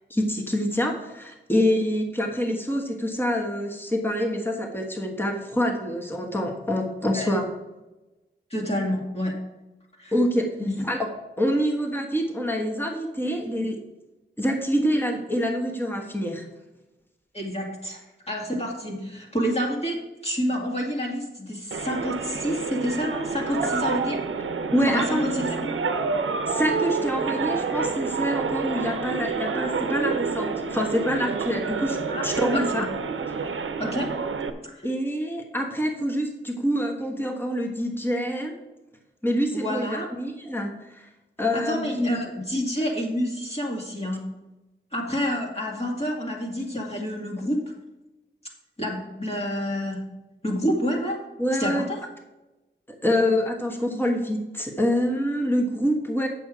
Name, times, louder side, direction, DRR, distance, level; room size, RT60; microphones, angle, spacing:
voice 1, 0.1-7.5 10.1-10.5 10.8-11.0 11.4-13.8 14.4-16.4 24.7-25.3 26.5-32.9 34.8-38.6 39.2-41.1 41.4-42.2 51.4-51.8 52.9-56.3, equal, 10° left, 1 dB, 1.3 m, -26 dB
voice 2, 8.5-9.4 10.0-10.1 10.6-10.8 17.3-24.3 24.9-25.7 32.1-32.2 32.5-32.9 33.8-34.3 34.6-34.9 39.5-40.1 41.5-44.4 44.9-47.6 48.8-50.1 50.4-51.2 51.6-52.0, equal, 30° left, -2 dB, 2.1 m, -28 dB
sound 1, 21.7-34.5, right 5 dB, 90° right, 0.7 m, -28 dB
8.5 x 6.8 x 4.9 m, 1.1 s
wide cardioid pair, 75°, 20 cm